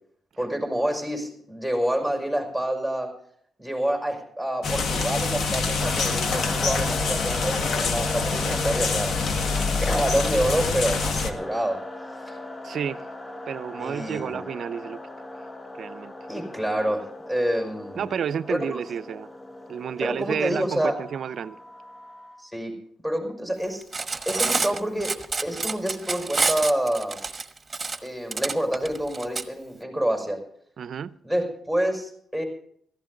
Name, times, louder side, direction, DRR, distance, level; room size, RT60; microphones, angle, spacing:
voice 1, 0.4-3.1 3.6-9.2 9.8-11.8 12.2-12.4 13.8-14.4 16.3-18.1 18.5-18.8 20.0-21.0 22.4-22.8 23.0-23.8 24.3-25.1 25.4-27.2 28.0-30.4 31.2-32.4, right 1 dB, 5° left, 3 dB, 5.6 m, -27 dB
sound 1, 4.6-11.3, left 4 dB, 65° left, 1.4 m, -26 dB
sound 2, 5.8-22.5, left 2 dB, 25° left, 1.2 m, -38 dB
voice 2, 12.6-13.1 13.5-15.0 15.8-16.1 18.0-19.3 19.7-21.6 30.8-31.1, right 8 dB, 65° right, 16 dB, 0.6 m, -31 dB
Cutlery silverware, 23.8-29.4, right 4 dB, 30° right, 1.3 m, -27 dB
16.0 x 14.5 x 3.9 m, 0.64 s
cardioid pair, 65°, 0 cm